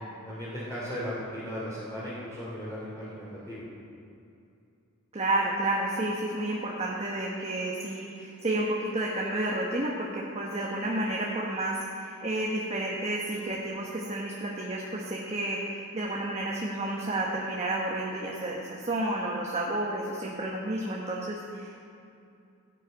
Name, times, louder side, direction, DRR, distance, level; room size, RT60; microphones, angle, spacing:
voice 1, 0.3-3.6, equal, 15° left, -11 dB, 3.0 m, -36 dB
voice 2, 5.1-21.8, right 1 dB, 30° right, -3 dB, 1.2 m, -31 dB
16.5 x 8.3 x 5.2 m, 2.6 s
head